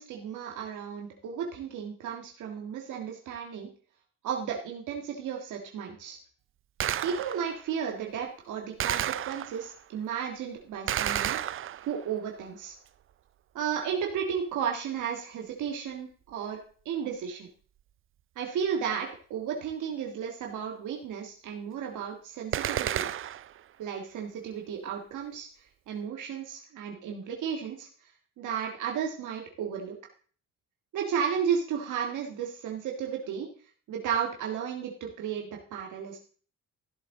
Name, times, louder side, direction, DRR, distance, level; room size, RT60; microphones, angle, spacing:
voice 1, 0.0-3.7 4.2-6.2 7.0-11.4 11.9-12.7 13.5-16.6 16.9-17.5 18.4-23.1 23.8-25.5 25.9-27.9 28.4-30.0 30.9-33.5 33.9-36.2, right 7 dB, 80° right, 1 dB, 1.9 m, -33 dB
Gunshot gunfire, 6.8-7.6 8.8-9.8 10.9-12.1 22.5-23.6, right 11 dB, 45° right, 0.4 m, -31 dB
14.5 x 7.9 x 3.9 m, 0.43 s
cardioid pair, 90°, 30 cm